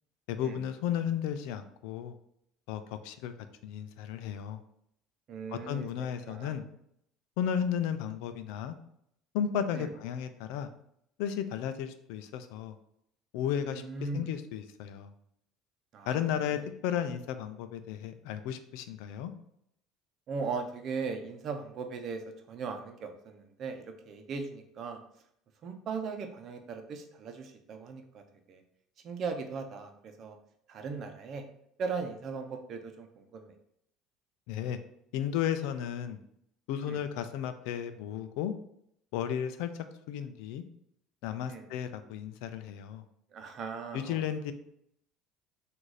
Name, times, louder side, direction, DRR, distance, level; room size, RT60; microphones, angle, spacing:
voice 1, 0.3-2.2 2.7-3.3 3.6-4.6 5.5-6.6 7.4-8.7 9.3-10.7 11.2-12.7 13.3-13.8 14.1-15.1 16.1-19.3 34.5-34.8 35.1-36.2 36.7-38.5 39.1-40.6 41.2-43.0 43.9-44.5, left 9 dB, 80° left, 10 dB, 0.4 m, -34 dB
voice 2, 5.3-6.6 9.7-9.9 13.6-14.3 15.9-16.2 16.5-16.6 20.3-22.2 22.5-25.0 25.6-28.2 28.5-28.6 29.0-30.3 30.7-31.4 31.8-33.5 36.9-37.0 41.5-41.6 43.3-44.2, right 5 dB, 50° right, 5 dB, 0.7 m, -38 dB
3.9 x 2.6 x 4.7 m, 0.72 s
supercardioid pair, 110°, 0 cm